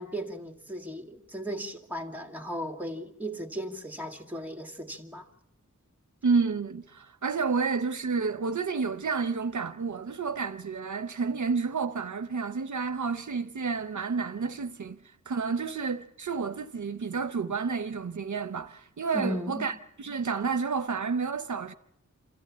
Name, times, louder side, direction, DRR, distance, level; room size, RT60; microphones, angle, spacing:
voice 1, 0.0-5.3 19.1-19.7, equal, 5° right, 1.9 m, -36 dB
voice 2, 6.2-15.0 15.3-21.7, right 5 dB, 75° right, 0.6 m, -30 dB
27.0 x 13.5 x 7.3 m
wide cardioid pair, 60°, 30 cm